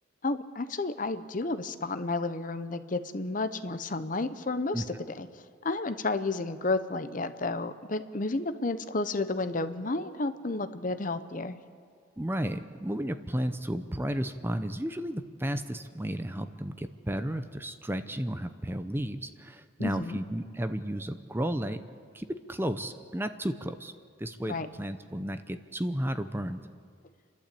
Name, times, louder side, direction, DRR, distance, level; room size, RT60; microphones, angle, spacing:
voice 1, 0.2-4.8 5.1-5.3 5.6-11.6 19.8-20.2 24.5-24.7, left 3 dB, 45° left, 11 dB, 0.9 m, -31 dB
voice 2, 12.2-21.8 22.1-23.9 24.2-26.6, right 1 dB, 10° right, 9 dB, 0.7 m, -33 dB
30.0 x 12.0 x 8.5 m, 2.1 s
head